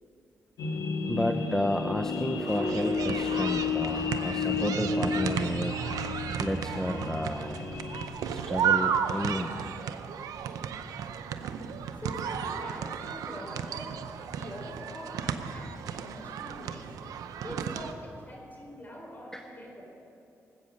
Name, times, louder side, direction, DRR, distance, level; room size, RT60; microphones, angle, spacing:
sound 1, 0.6-8.1, left 4 dB, 90° left, 1.5 m, -32 dB
voice 1, 1.1-7.6 8.3-9.6 19.3-19.5, left 1 dB, 10° left, 5 dB, 0.7 m, -32 dB
sound 2, 2.5-17.9, right 8 dB, 90° right, 0.6 m, -34 dB
voice 2, 12.0-16.9 17.4-19.9, equal, 30° left, 0 dB, 4.1 m, -44 dB
19.0 x 8.5 x 6.4 m, 2.6 s
cardioid pair, 80°, 6 cm